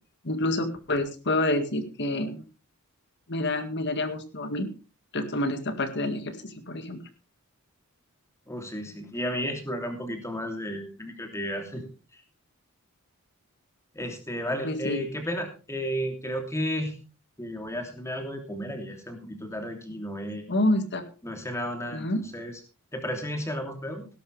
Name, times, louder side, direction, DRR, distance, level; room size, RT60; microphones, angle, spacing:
voice 1, 0.2-2.4 3.3-4.7 5.1-7.0 14.6-15.0 20.5-21.0 21.9-22.2, left 1 dB, 50° left, 9 dB, 1.9 m, -28 dB
voice 2, 8.5-11.9 13.9-17.0 17.4-20.4 21.2-22.1 22.3-22.5 22.9-24.1, equal, 15° left, 4 dB, 3.0 m, -33 dB
18.0 x 11.5 x 3.4 m, 0.33 s
head